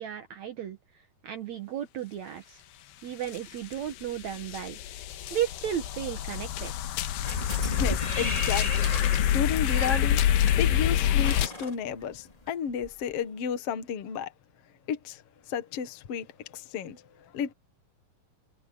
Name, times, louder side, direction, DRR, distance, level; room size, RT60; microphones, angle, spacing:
voice 1, 0.0-2.6 3.0-4.8 5.3-6.7, right 10 dB, 75° right, 1.7 m, -34 dB
sound 1, 3.3-3.4 3.7-11.5, left 11 dB, 90° left, 3.3 m, -27 dB
sound 2, 7.2-12.5 12.8-12.9, left 1 dB, 10° left, 2.3 m, -34 dB
voice 2, 7.7-8.9 9.3-10.2 10.6-14.3 14.9-17.5, left 7 dB, 55° left, 1.7 m, -33 dB
omnidirectional pair, 4.7 m